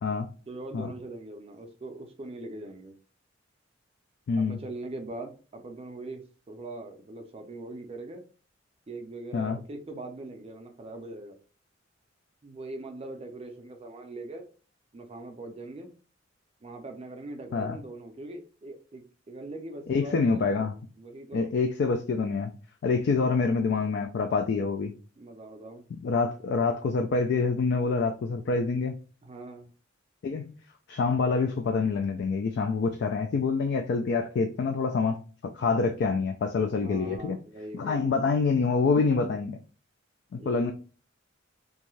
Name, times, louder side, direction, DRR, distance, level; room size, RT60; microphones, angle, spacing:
voice 1, 0.5-3.0 4.4-8.2 8.9-11.4 12.4-14.5 14.9-15.9 16.6-21.5 23.2-23.7 25.2-25.9 29.2-29.7 36.8-38.3 40.4-40.7, right 2 dB, 30° right, 0.4 m, -42 dB
voice 2, 4.3-4.6 9.3-9.6 17.5-17.8 19.9-20.8 21.3-22.5 22.8-24.9 26.0-29.0 30.2-30.5 30.9-35.2 35.5-37.4 37.7-39.6 40.3-40.7, left 4 dB, 55° left, 0.3 m, -26 dB
2.6 x 2.3 x 3.0 m
head